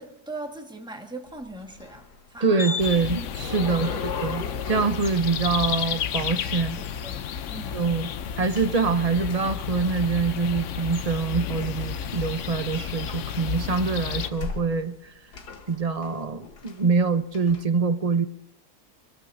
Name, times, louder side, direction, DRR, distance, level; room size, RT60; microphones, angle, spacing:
voice 1, 0.0-2.8 3.6-4.0 6.7-7.9, right 2 dB, 5° right, 3 dB, 1.5 m, -40 dB
sound 1, 1.3-6.3 6.7-7.8 8.6-8.7 9.3-9.4 10.1-10.6 11.6-12.4 12.9-13.7 14.0-15.1 15.3-17.0 17.3-17.6, left 5 dB, 90° left, 2.0 m, -37 dB
voice 2, 2.4-6.8 7.7-8.1 8.4-15.1 15.7-18.2, right 4 dB, 40° right, 10 dB, 0.5 m, -25 dB
sound 2, 2.8-14.3, left 8 dB, 60° left, 0.9 m, -32 dB
26.5 x 14.5 x 2.7 m, 0.87 s
omnidirectional pair, 1.7 m